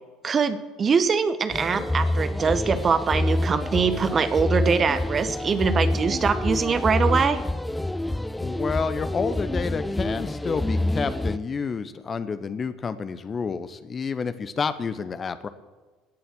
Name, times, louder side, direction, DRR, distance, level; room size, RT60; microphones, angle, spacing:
voice 1, 0.2-7.4, right 5 dB, 35° right, 11 dB, 1.2 m, -23 dB
sound 1, 1.5-11.4, left 1 dB, 10° left, 0.4 m, -27 dB
voice 2, 8.4-15.5, left 5 dB, 30° left, 12 dB, 0.9 m, -29 dB
16.5 x 7.0 x 7.6 m, 1.3 s
figure-of-eight pair, 60°, 0 cm